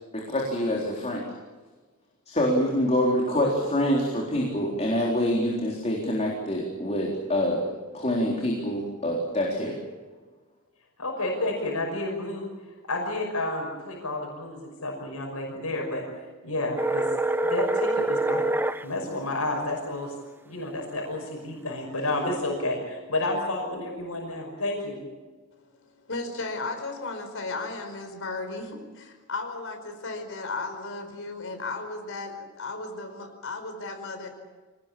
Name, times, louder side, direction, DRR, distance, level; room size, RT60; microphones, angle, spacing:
voice 1, 0.1-1.2 2.3-7.6 7.9-9.8, equal, 30° left, -1 dB, 4.0 m, -26 dB
voice 2, 11.0-12.5 12.9-17.1 17.4-18.5 18.8-20.1 20.4-25.0, left 2 dB, 90° left, 1 dB, 5.8 m, -30 dB
sound 1, 16.8-18.8, right 2 dB, 10° right, 0.7 m, -25 dB
voice 3, 26.1-34.3, left 3 dB, 65° left, 6 dB, 5.0 m, -35 dB
26.0 x 19.5 x 8.7 m, 1.3 s
head